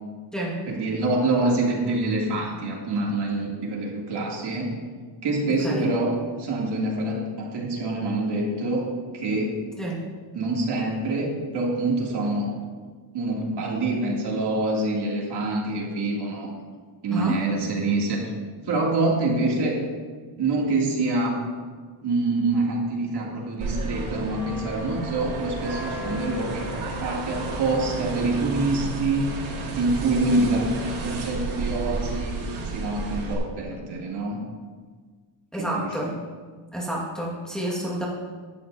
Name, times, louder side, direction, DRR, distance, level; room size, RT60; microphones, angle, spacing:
voice 1, 0.7-4.7 5.2-8.9 9.1-9.6 10.3-12.5 13.1-16.5 17.0-18.3 18.6-19.8 20.4-21.3 22.0-29.3 29.7-32.4 32.6-34.4 35.6-36.0, right 2 dB, 55° right, -3 dB, 3.0 m, -26 dB
voice 2, 17.1-17.4 35.5-36.1 36.7-38.1, right 1 dB, ahead, -5 dB, 2.0 m, -29 dB
sound 1, 23.6-33.3, right 2 dB, 80° right, 3.3 m, -32 dB
16.5 x 11.5 x 2.8 m, 1.5 s
cardioid pair, 150°, 49 cm